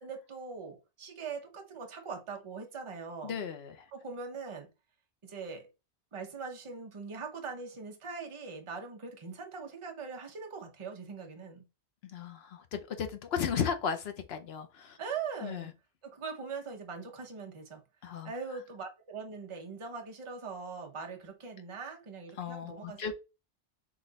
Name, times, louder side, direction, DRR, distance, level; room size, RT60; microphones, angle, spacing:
voice 1, 0.0-3.4 3.9-4.7 5.2-5.7 6.1-11.7 15.0-15.7 16.0-17.8 18.2-23.1, right 5 dB, 30° right, 0.8 m, -41 dB
voice 2, 3.2-3.8 12.0-15.0 15.4-15.7 18.0-18.3 22.4-23.1, left 7 dB, 65° left, 0.9 m, -35 dB
3.9 x 3.1 x 3.9 m
omnidirectional pair, 1.2 m